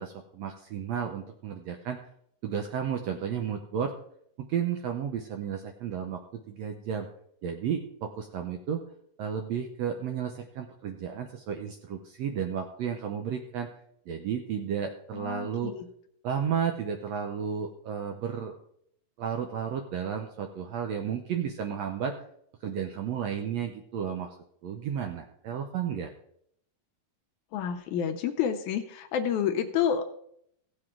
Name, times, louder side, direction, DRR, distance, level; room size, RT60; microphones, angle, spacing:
voice 1, 0.0-2.0 2.4-3.9 4.4-7.1 7.4-8.8 9.2-13.7 14.1-15.7 16.2-18.6 19.2-22.1 22.6-24.4 24.6-26.1, right 8 dB, 75° right, 5 dB, 1.6 m, -33 dB
voice 2, 15.1-15.9 27.5-30.2, left 8 dB, 75° left, 6 dB, 2.0 m, -29 dB
16.0 x 7.7 x 3.7 m, 0.69 s
omnidirectional pair, 3.8 m